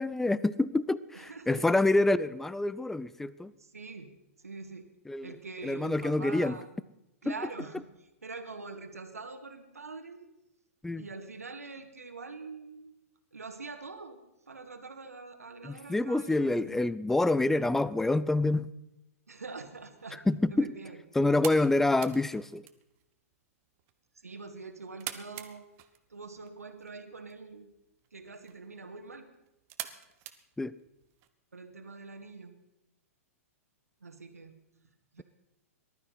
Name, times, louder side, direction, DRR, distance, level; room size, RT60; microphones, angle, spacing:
voice 1, 0.0-3.5 5.1-5.3 5.6-6.6 7.3-7.4 10.8-11.1 15.6-18.7 20.3-20.7 21.1-22.7 30.6-30.8, left 2 dB, 5° left, 18 dB, 0.5 m, -27 dB
voice 2, 1.1-1.9 3.6-4.9 5.2-6.7 7.2-7.9 8.2-10.3 11.0-12.9 13.3-14.2 14.5-16.9 19.3-20.2 20.5-21.0 24.1-25.7 26.1-27.7 28.1-29.3 31.5-32.5 34.0-34.6 35.1-35.2, right 4 dB, 75° right, 8 dB, 2.1 m, -44 dB
sound 1, 19.9-31.3, right 13 dB, 35° right, 1.3 m, -48 dB
19.5 x 12.5 x 5.8 m, 0.90 s
figure-of-eight pair, 110°, 8 cm